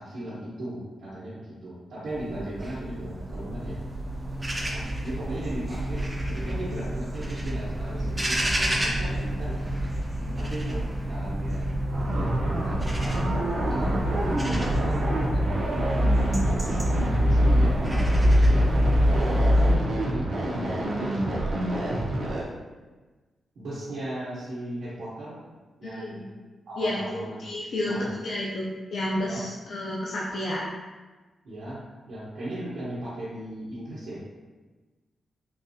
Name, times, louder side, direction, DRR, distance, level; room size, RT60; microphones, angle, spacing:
voice 1, 0.0-3.8 4.6-9.7 10.3-11.7 12.1-13.1 13.6-17.8 18.1-18.4 19.3-22.1 23.5-25.4 25.8-26.2 26.7-27.4 27.8-28.1 29.2-29.4 31.4-34.3, right 1 dB, 90° right, -11 dB, 1.0 m, -37 dB
sound 1, 2.1-19.8, equal, 15° right, 0.4 m, -26 dB
sound 2, 11.9-22.4, right 1 dB, 65° right, 0.6 m, -28 dB
voice 2, 25.8-26.3 26.8-30.7, left 1 dB, 60° left, -5 dB, 0.4 m, -31 dB
3.8 x 2.3 x 2.7 m, 1.3 s
wide cardioid pair, 150°, 0 cm